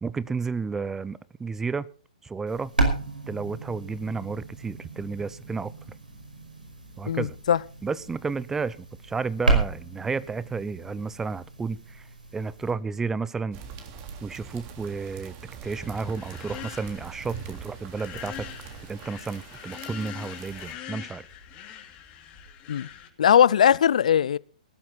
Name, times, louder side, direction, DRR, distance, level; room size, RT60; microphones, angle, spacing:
voice 1, 0.0-1.9 2.2-2.7 3.3-5.7 7.0-7.3 7.8-8.8 9.0-12.0 12.3-13.6 14.2-15.3 15.6-18.5 18.9-21.3, right 4 dB, 10° right, 0.7 m, -32 dB
sound 1, 2.5-12.7, right 3 dB, 90° right, 5.2 m, -32 dB
voice 2, 7.1-7.6 22.7-22.9 23.2-24.4, left 9 dB, 60° left, 0.7 m, -19 dB
sound 2, 13.5-20.7, right 6 dB, 35° right, 3.2 m, -43 dB
sound 3, 15.6-23.1, left 10 dB, 30° left, 3.0 m, -43 dB
19.0 x 13.0 x 4.1 m
figure-of-eight pair, 120°, 4 cm